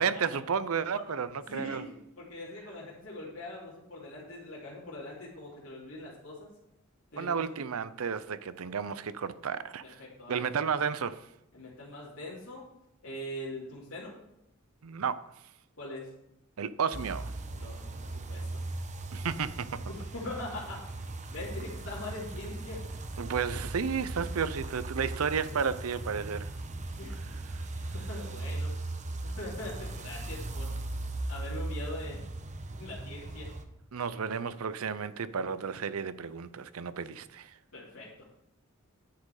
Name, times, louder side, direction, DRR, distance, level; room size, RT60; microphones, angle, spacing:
voice 1, 0.0-1.8 7.2-10.0 10.3-11.3 14.8-15.3 16.6-17.3 19.1-19.9 23.2-26.5 27.5-27.9 33.9-37.6, right 6 dB, 85° right, 0.6 m, -32 dB
voice 2, 1.5-6.5 7.1-7.4 9.8-10.4 11.5-12.6 13.0-14.1 15.8-16.1 17.5-18.6 19.9-20.8 21.3-22.8 27.0-27.2 27.8-28.7 29.2-30.7 31.3-32.2 32.8-33.5 37.7-38.2, left 1 dB, 70° left, 2.9 m, -42 dB
sound 1, 16.9-33.6, right 2 dB, 35° right, 0.8 m, -38 dB
10.0 x 7.5 x 4.8 m
head